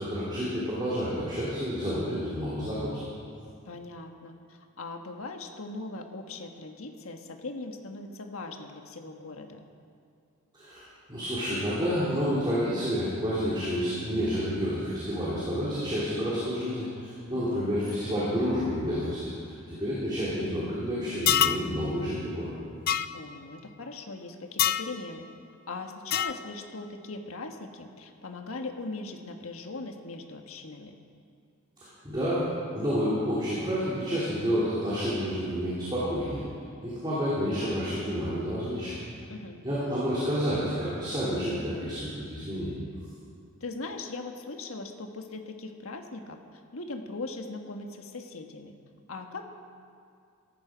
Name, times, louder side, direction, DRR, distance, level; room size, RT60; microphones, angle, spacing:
voice 1, 0.0-3.0 10.5-22.6 31.8-32.5 32.7-36.4 36.8-39.0 39.6-42.8, equal, 20° right, -9 dB, 3.2 m, -29 dB
voice 2, 3.6-9.6 17.5-17.8 23.1-25.3 25.7-30.9 39.3-39.6 43.6-48.7 49.1-49.5, left 3 dB, 80° left, 4 dB, 1.4 m, -40 dB
sound 1, 21.3-21.7 22.9-23.1 24.6-24.9 26.1-26.4, left 9 dB, 45° left, 0.4 m, -24 dB
17.0 x 14.0 x 5.1 m, 2.4 s
head